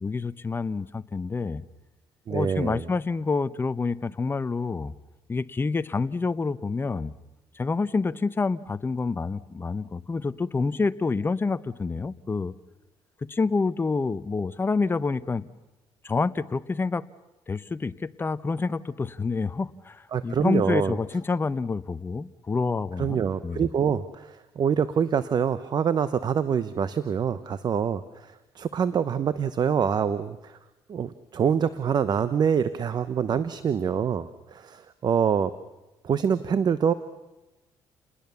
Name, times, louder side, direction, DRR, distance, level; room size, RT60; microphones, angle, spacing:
voice 1, 0.0-1.6 2.3-4.9 5.3-7.1 7.5-12.5 13.3-15.5 16.0-17.0 17.5-23.7, left 4 dB, 25° left, 14 dB, 0.8 m, -28 dB
voice 2, 2.3-2.8 20.1-21.0 23.0-30.6 30.9-35.5 36.0-36.9, right 7 dB, 45° right, 14 dB, 0.9 m, -25 dB
29.0 x 20.0 x 7.0 m, 1.0 s
cardioid pair, 95°, 10 cm